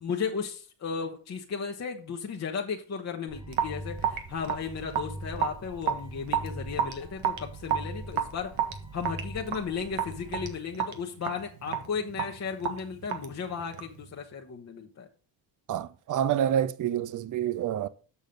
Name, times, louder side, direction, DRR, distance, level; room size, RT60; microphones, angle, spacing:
voice 1, 0.0-8.6 8.9-15.1, left 6 dB, 35° left, 1.0 m, -35 dB
sound 1, 3.3-10.5, right 1 dB, 10° right, 1.0 m, -42 dB
Raindrop / Drip, 3.5-14.0, right 9 dB, 70° right, 1.6 m, -32 dB
voice 2, 15.7-17.9, right 10 dB, 40° right, 0.6 m, -28 dB
7.1 x 6.3 x 5.2 m
cardioid pair, 115°, 49 cm